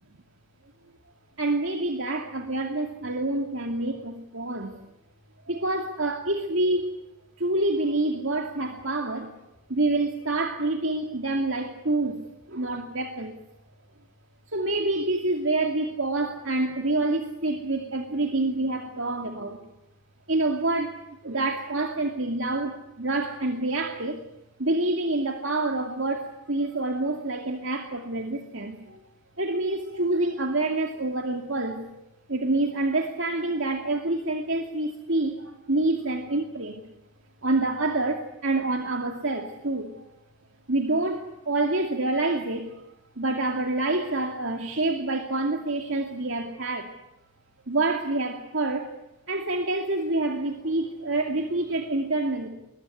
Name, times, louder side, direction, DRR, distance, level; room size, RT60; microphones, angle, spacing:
voice 1, 1.4-4.8 5.5-6.9 7.4-9.3 9.7-12.2 12.5-13.5 14.5-19.6 20.3-24.2 24.6-29.0 29.4-32.0 32.3-36.8 37.4-40.1 40.7-42.7 43.2-46.9 47.7-48.9 49.3-52.5, right 2 dB, 65° right, 4 dB, 2.5 m, -27 dB
21.5 x 21.5 x 9.8 m, 0.93 s
head